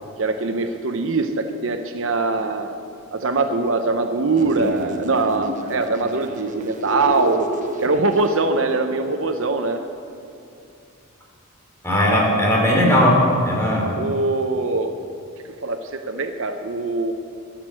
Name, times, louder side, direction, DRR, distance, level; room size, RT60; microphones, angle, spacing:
voice 1, 0.2-2.8 3.1-7.5 7.8-9.8 13.7-15.0 15.6-17.1, right 3 dB, 60° right, 7 dB, 0.7 m, -22 dB
sound 1, 4.4-8.4, right 1 dB, 35° right, 0.9 m, -30 dB
voice 2, 11.8-13.9, left 1 dB, 10° left, -2 dB, 2.8 m, -17 dB
11.5 x 10.5 x 7.5 m, 2.5 s
head